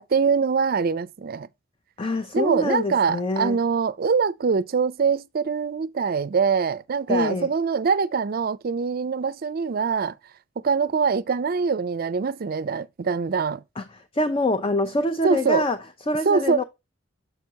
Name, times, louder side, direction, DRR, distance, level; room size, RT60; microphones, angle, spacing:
voice 1, 0.0-1.5 2.3-10.1 10.6-13.6 15.2-15.6 16.3-16.6, right 5 dB, 50° right, 0.4 m, -23 dB
voice 2, 2.0-3.6 7.1-7.5 13.8-13.9 14.1-15.8 16.1-16.6, left 1 dB, 30° left, 0.6 m, -25 dB
6.9 x 5.8 x 2.8 m
head